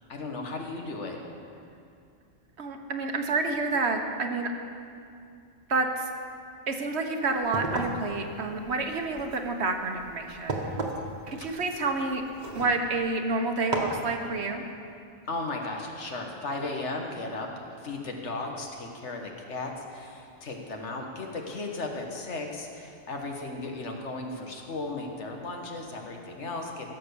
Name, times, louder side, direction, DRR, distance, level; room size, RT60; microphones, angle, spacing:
voice 1, 0.1-1.2 11.4-11.6 15.3-26.9, left 2 dB, 75° left, 2 dB, 1.7 m, -35 dB
voice 2, 2.6-4.5 5.7-6.1 6.7-10.6 11.3-12.2 12.5-14.6, right 3 dB, 65° right, 4 dB, 1.3 m, -29 dB
sound 1, 7.3-13.2 13.7-14.1, right 2 dB, 40° right, 1.3 m, -35 dB
16.0 x 6.8 x 6.9 m, 2.5 s
omnidirectional pair, 1.2 m